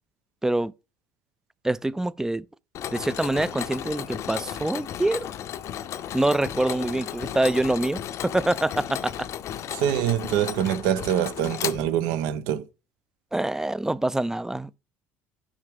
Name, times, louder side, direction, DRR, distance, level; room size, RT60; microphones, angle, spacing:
voice 1, 1.6-2.5 2.9-5.3 6.1-9.3 13.3-14.8, right 1 dB, 10° right, 0.3 m, -25 dB
Mechanisms, 2.7-12.3, left 10 dB, 55° left, 0.6 m, -34 dB
voice 2, 9.7-12.6, right 10 dB, 75° right, 0.7 m, -25 dB
6.3 x 4.9 x 3.6 m
hypercardioid pair, 70°, 6 cm